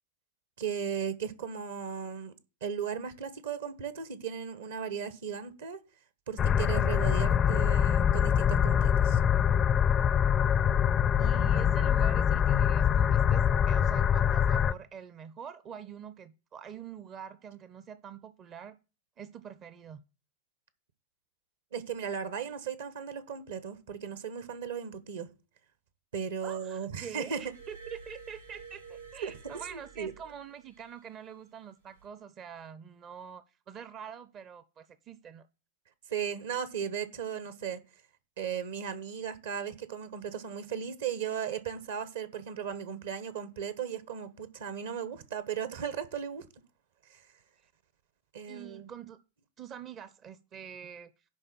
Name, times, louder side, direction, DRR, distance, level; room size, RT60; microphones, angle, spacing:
voice 1, 0.6-2.3 2.6-5.8 6.3-9.2 21.7-25.3 26.1-27.4 29.2-30.1 36.1-37.8 38.4-46.5 47.1-47.3 48.3-48.9, right 7 dB, 60° right, 1.2 m, -36 dB
sound 1, 6.4-14.7, left 8 dB, 25° left, 0.4 m, -24 dB
voice 2, 11.2-18.8 19.2-20.0 26.4-35.5 47.6-47.7 48.5-49.2 49.6-51.1, right 8 dB, 30° right, 0.6 m, -45 dB
Glass, 27.3-30.9 31.8-32.1, right 5 dB, 85° right, 3.5 m, -50 dB
10.5 x 3.9 x 7.6 m
figure-of-eight pair, 90°, 0 cm